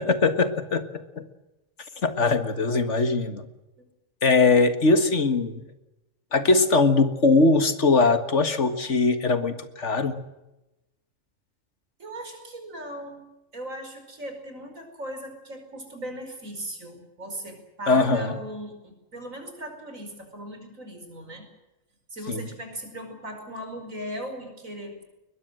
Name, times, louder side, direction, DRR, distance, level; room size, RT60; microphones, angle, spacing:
voice 1, 0.1-1.3 2.0-3.5 4.2-5.7 6.3-10.2 17.9-18.3 22.3-22.4, left 3 dB, 60° left, 10 dB, 2.0 m, -21 dB
voice 2, 12.0-13.2 13.5-21.5 22.1-25.0, right 1 dB, 80° right, 6 dB, 5.6 m, -38 dB
21.5 x 21.5 x 7.7 m, 0.97 s
omnidirectional pair, 1.4 m